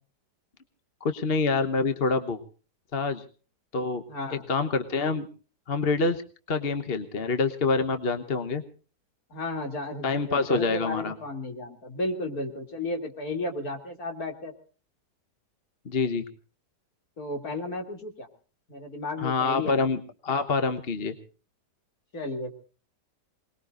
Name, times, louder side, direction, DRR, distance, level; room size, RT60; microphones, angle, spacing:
voice 1, 1.0-2.4 2.9-3.2 3.7-4.0 4.5-5.3 5.7-6.2 6.5-8.6 10.0-11.1 15.8-16.2 19.2-21.1, left 4 dB, 40° left, 8 dB, 1.2 m, -26 dB
voice 2, 4.1-4.5 9.3-14.5 17.2-18.3 18.7-19.7 22.1-22.6, left 2 dB, 60° left, 4 dB, 3.4 m, -33 dB
26.5 x 20.5 x 2.6 m, 0.37 s
omnidirectional pair, 1.8 m